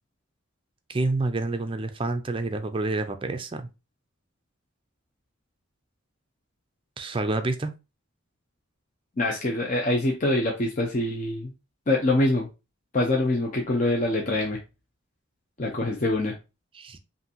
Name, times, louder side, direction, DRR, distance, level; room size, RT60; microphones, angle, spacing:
voice 1, 0.9-3.7 7.0-7.7 16.7-17.0, right 2 dB, 25° right, 8 dB, 0.4 m, -28 dB
voice 2, 9.2-11.5 11.9-12.5 12.9-14.6 15.6-16.3, left 2 dB, 40° left, 0 dB, 0.6 m, -24 dB
5.6 x 2.6 x 2.8 m, 0.28 s
head